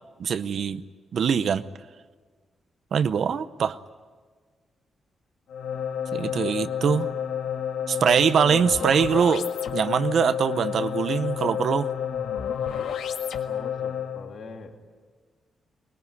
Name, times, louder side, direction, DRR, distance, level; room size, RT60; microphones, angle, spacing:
voice 1, 0.2-0.8 1.1-1.6 2.9-3.8 6.1-7.1 7.9-11.9, right 7 dB, 55° right, 12 dB, 0.7 m, -23 dB
sound 1, 5.5-14.3, left 8 dB, 80° left, 1.8 m, -30 dB
voice 2, 13.5-14.9, left 4 dB, 55° left, 3 dB, 2.6 m, -42 dB
22.5 x 22.0 x 9.5 m, 1.5 s
wide cardioid pair, 170°, 0 cm